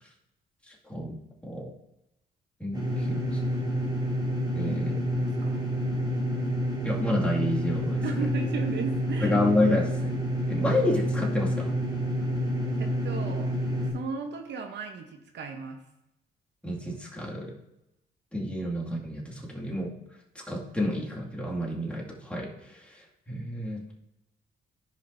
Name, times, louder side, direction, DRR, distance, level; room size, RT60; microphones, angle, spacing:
voice 1, 0.7-1.7 2.6-3.4 4.5-5.0 6.8-8.0 9.2-10.2 10.5-11.7 16.6-17.5 18.3-19.9 20.3-23.9, left 1 dB, 5° left, -3 dB, 2.2 m, -30 dB
sound 1, 2.7-13.9, equal, 20° right, 3.0 m, -28 dB
voice 2, 4.7-5.6 8.0-9.4 12.8-15.8, right 4 dB, 60° right, 5 dB, 0.9 m, -36 dB
15.0 x 5.2 x 2.7 m, 0.87 s
cardioid pair, 90°, 20 cm